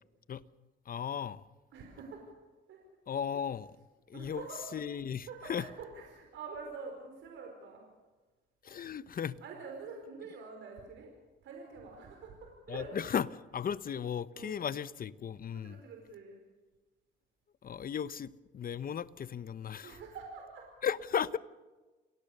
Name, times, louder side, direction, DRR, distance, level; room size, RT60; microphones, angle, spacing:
voice 1, 0.9-1.4 3.1-3.7 4.1-4.4 4.7-5.7 8.6-9.4 12.7-15.8 17.6-20.0 20.8-21.4, left 8 dB, 45° left, 0.9 m, -36 dB
voice 2, 1.7-2.3 2.7-2.8 4.1-4.6 5.2-7.8 9.4-11.1 11.4-13.1 14.3-14.6 15.5-16.4 19.8-20.7, right 4 dB, 80° right, 4.9 m, -46 dB
28.0 x 19.0 x 6.8 m
cardioid pair, 90°, 20 cm